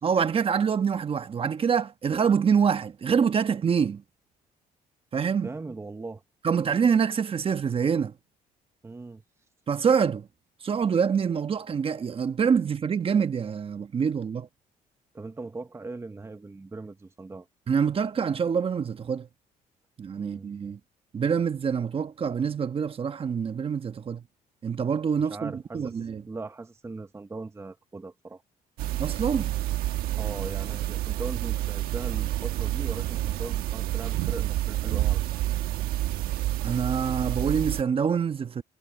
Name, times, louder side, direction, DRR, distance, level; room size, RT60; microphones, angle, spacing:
voice 1, 0.0-4.0 5.1-5.5 6.4-8.1 9.7-10.3 10.6-14.5 17.7-19.3 20.0-20.8 21.1-24.2 24.6-26.2 29.0-29.5 36.6-38.6, right 6 dB, 40° right, 1.2 m, -25 dB
voice 2, 5.4-6.2 8.8-9.2 15.1-17.5 20.2-20.5 25.2-26.0 26.3-28.4 30.2-35.2, right 3 dB, 15° right, 1.0 m, -39 dB
sound 1, 28.8-37.8, right 14 dB, 85° right, 1.2 m, -29 dB
cardioid pair, 100°, 15 cm